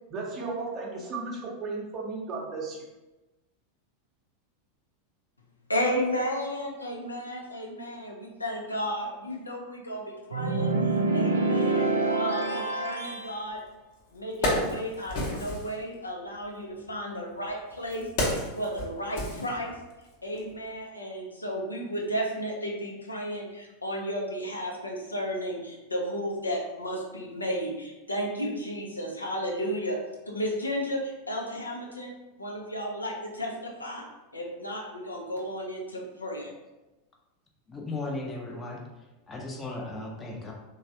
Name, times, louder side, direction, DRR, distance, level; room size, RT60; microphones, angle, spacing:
voice 1, 0.0-2.8, right 3 dB, 35° right, -2 dB, 0.7 m, -35 dB
voice 2, 5.7-11.9 12.2-13.6 14.1-18.1 18.5-19.8 20.2-30.0 30.3-32.1 32.4-34.0 34.3-36.5, equal, 85° left, -1 dB, 0.5 m, -33 dB
sound 1, 10.3-13.3, right 3 dB, 75° right, 0.3 m, -26 dB
Wood, 13.6-13.7 14.1-15.7 16.7-20.0 20.4-20.5, left 1 dB, 50° left, 0.8 m, -31 dB
voice 3, 37.7-38.8 39.3-40.5, left 2 dB, 20° left, 0 dB, 0.6 m, -36 dB
3.1 x 2.2 x 2.7 m, 1.1 s
figure-of-eight pair, 90°, 0 cm